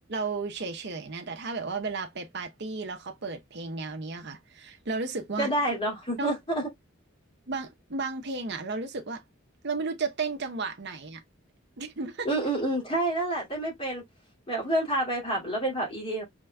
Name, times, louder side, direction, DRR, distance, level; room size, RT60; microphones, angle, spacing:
voice 1, 0.1-5.5 6.2-6.4 7.5-9.2 9.6-11.2 11.8-12.3, right 4 dB, 60° right, 0.9 m, -33 dB
voice 2, 5.4-6.7 12.2-14.0 14.5-16.2, right 1 dB, 30° left, 2.6 m, -28 dB
5.0 x 3.6 x 2.3 m
head